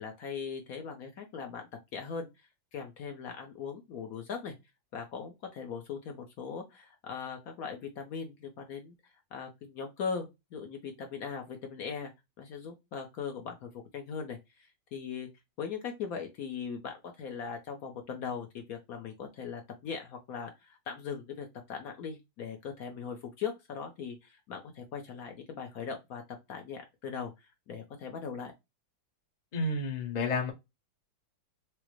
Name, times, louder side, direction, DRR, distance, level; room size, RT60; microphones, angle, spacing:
voice 1, 0.0-2.3 2.7-4.5 4.9-8.9 9.3-12.1 12.4-14.4 14.9-15.3 15.6-26.2 26.5-27.3 27.7-28.5, left 6 dB, 65° left, 1.0 m, -39 dB
voice 2, 29.5-30.5, left 3 dB, 40° left, 0.6 m, -30 dB
4.9 x 2.0 x 3.0 m
omnidirectional pair, 2.0 m